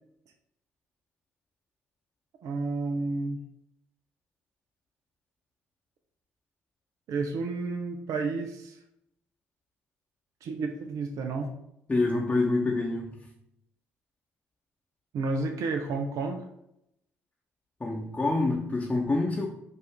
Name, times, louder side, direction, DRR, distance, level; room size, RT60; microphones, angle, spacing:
voice 1, 2.4-3.4 7.1-8.8 10.4-11.5 15.1-16.4, right 3 dB, 60° right, 5 dB, 0.5 m, -31 dB
voice 2, 11.9-13.2 17.8-19.5, left 2 dB, 20° left, -2 dB, 0.9 m, -26 dB
5.7 x 2.5 x 3.5 m, 0.80 s
hypercardioid pair, 55°, 6 cm